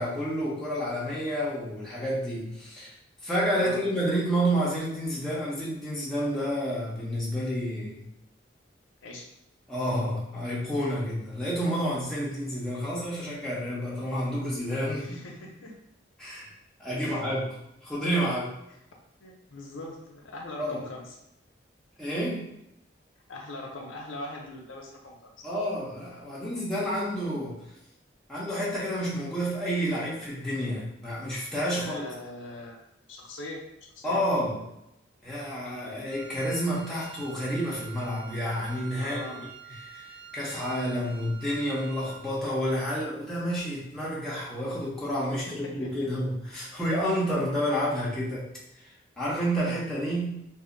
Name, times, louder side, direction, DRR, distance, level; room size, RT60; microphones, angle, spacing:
voice 1, 0.0-2.9 3.2-8.1 9.7-15.2 16.2-16.5 16.8-17.6 17.8-18.6 20.6-20.8 22.0-22.5 25.4-27.6 28.3-32.0 34.0-34.6 35.2-39.3 39.8-40.1 40.3-48.5 49.2-50.5, equal, 5° left, -8 dB, 0.7 m, -29 dB
voice 2, 3.5-3.8 9.0-9.3 15.0-15.7 17.0-17.2 18.7-18.8 19.2-21.2 23.3-25.5 31.7-32.8 33.1-34.7 39.0-39.5 45.5-46.1, left 2 dB, 85° left, 0 dB, 0.6 m, -41 dB
Wind instrument woodwind instrument, 36.1-42.4, right 9 dB, 60° right, 0.8 m, -47 dB
2.7 x 2.0 x 3.8 m, 0.82 s
head